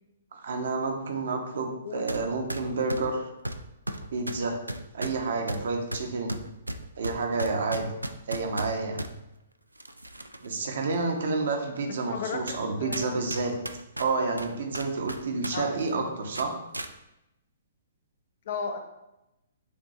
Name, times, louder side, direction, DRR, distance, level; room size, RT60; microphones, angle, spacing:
voice 1, 0.3-3.3 4.1-4.6 4.9-6.4 7.0-7.9 8.3-9.0 10.4-13.5 14.0-16.6, right 3 dB, 55° right, 3 dB, 0.8 m, -29 dB
sound 1, 2.1-2.2 2.5-9.1 9.8-10.5 10.9-11.0 11.8-11.9 12.5-12.6 12.9-15.5 15.8-15.9 16.3-16.9, right 1 dB, 85° right, 0.3 m, -35 dB
voice 2, 12.0-13.0 15.5-16.0 18.5-18.8, left 6 dB, 50° left, 5 dB, 0.5 m, -35 dB
6.8 x 2.7 x 2.7 m, 0.90 s
figure-of-eight pair, 120°, 0 cm